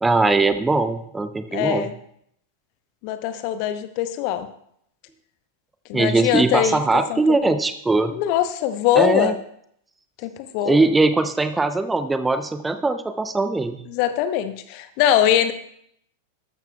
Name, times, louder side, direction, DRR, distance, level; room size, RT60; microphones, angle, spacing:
voice 1, 0.0-1.8 5.9-8.2 8.9-9.3 10.6-13.8, right 3 dB, 10° right, 10 dB, 0.6 m, -20 dB
voice 2, 1.5-1.9 3.0-4.5 5.9-6.8 7.1-7.2 8.1-9.3 10.2-10.8 13.9-15.5, left 10 dB, 45° left, 11 dB, 0.8 m, -22 dB
13.5 x 11.5 x 2.3 m, 0.69 s
figure-of-eight pair, 90°, 0 cm